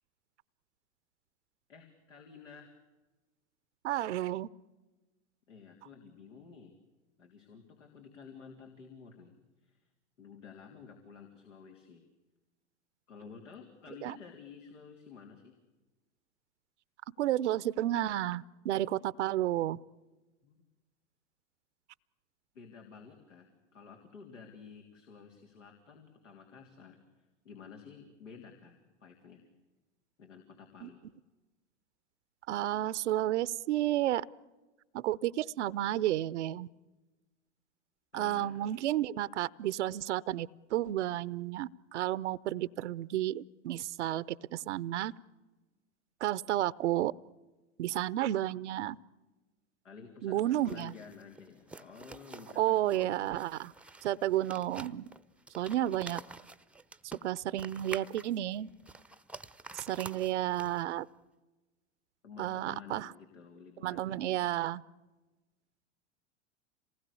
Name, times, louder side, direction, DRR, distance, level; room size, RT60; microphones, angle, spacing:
voice 1, 1.7-2.7 5.5-6.8 7.2-9.8 10.2-12.1 13.1-15.5 20.4-20.6 22.6-29.5 30.2-31.0 38.1-38.7 49.8-53.5 62.2-64.5, left 6 dB, 85° left, 3 dB, 3.5 m, -52 dB
voice 2, 3.8-4.5 14.0-14.1 17.2-19.8 30.8-30.9 32.5-34.3 34.9-36.7 38.1-45.1 46.2-47.1 47.8-49.0 50.2-50.9 52.6-53.7 54.0-55.1 55.6-56.2 57.2-58.7 59.7-61.1 62.4-63.1 63.8-64.8, right 13 dB, 70° right, 19 dB, 0.8 m, -31 dB
sound 1, 50.5-61.0, right 3 dB, 5° right, 0.8 m, -49 dB
27.0 x 20.0 x 8.5 m, 1.2 s
hypercardioid pair, 100°, 36 cm